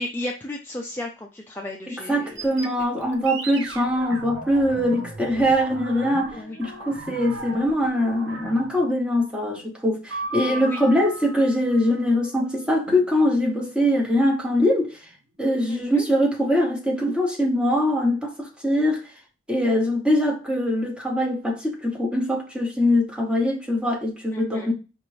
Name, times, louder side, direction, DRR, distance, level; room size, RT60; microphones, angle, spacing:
voice 1, 0.0-2.4 2.9-3.1 6.3-6.6 10.4-10.8 15.7-16.1 24.3-24.7, left 1 dB, 10° left, 0.4 m, -34 dB
voice 2, 1.9-15.0 15.4-19.1 19.5-24.7, left 1 dB, 5° right, 0.7 m, -22 dB
sound 1, 2.3-8.9 10.1-12.7, right 2 dB, 75° right, 0.8 m, -37 dB
4.9 x 2.6 x 3.1 m
head